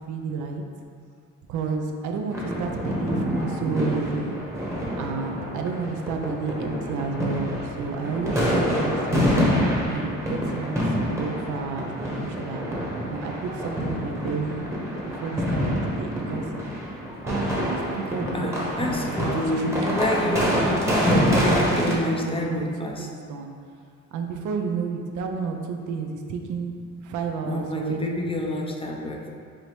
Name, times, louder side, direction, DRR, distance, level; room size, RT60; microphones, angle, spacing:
voice 1, 0.1-0.6 1.5-4.4 5.0-9.4 9.8-12.7 13.1-16.4 17.2-22.7 23.0-23.5 24.1-28.3, right 5 dB, 75° right, 3 dB, 0.5 m, -31 dB
sound 1, 2.3-21.9, equal, 10° right, 0.9 m, -26 dB
voice 2, 18.3-23.1 27.5-29.3, left 1 dB, 20° left, 0 dB, 0.4 m, -28 dB
4.9 x 2.7 x 3.0 m, 2.2 s
cardioid pair, 90°, 30 cm